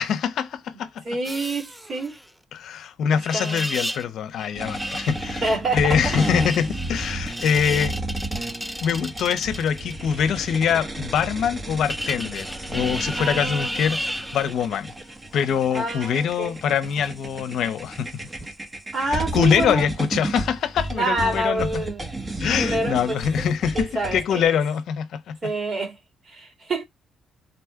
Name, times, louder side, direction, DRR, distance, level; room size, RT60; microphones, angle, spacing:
voice 1, 0.0-1.0 2.5-5.5 5.7-8.0 8.8-14.9 15.3-18.1 19.0-21.8 22.4-25.5, left 7 dB, 75° left, 0.6 m, -24 dB
voice 2, 1.0-2.2 3.1-3.7 5.4-6.0 13.2-13.7 15.7-16.6 18.9-19.9 20.9-22.0 22.6-23.2 23.7-24.5 25.4-26.0 26.3-26.8, right 2 dB, 45° right, 2.2 m, -27 dB
sound 1, 1.2-2.3 3.2-4.1 4.4-9.9 11.9-14.5 16.9-17.1, equal, ahead, 0.4 m, -33 dB
sound 2, 4.6-24.4, right 2 dB, 20° right, 1.0 m, -33 dB
4.0 x 2.2 x 4.4 m
cardioid pair, 80°, 0 cm